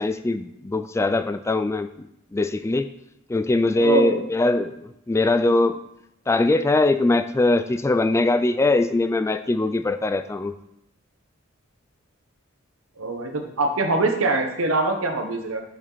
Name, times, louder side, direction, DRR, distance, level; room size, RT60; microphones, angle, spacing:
voice 1, 0.0-1.9 2.3-2.9 3.3-5.8 6.3-10.5, left 2 dB, 15° left, 9 dB, 0.3 m, -21 dB
voice 2, 3.8-4.2 13.0-15.6, right 2 dB, 90° right, 4 dB, 1.2 m, -23 dB
7.3 x 6.4 x 4.0 m, 0.81 s
head